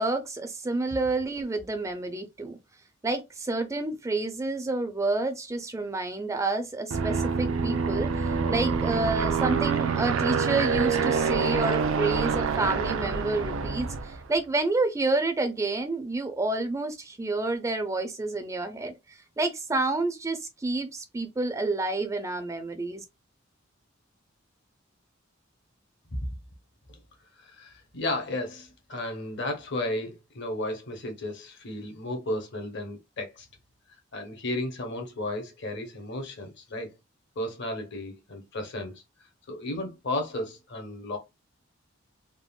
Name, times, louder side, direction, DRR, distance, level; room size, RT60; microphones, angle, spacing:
voice 1, 0.0-2.6 3.0-23.0, right 2 dB, 15° right, 0.4 m, -29 dB
Aircraft, 6.9-14.2, right 5 dB, 80° right, 0.4 m, -26 dB
voice 2, 27.4-33.5 34.1-36.9 37.4-39.0 39.5-41.2, left 1 dB, 60° left, 0.9 m, -34 dB
3.5 x 2.1 x 2.3 m
head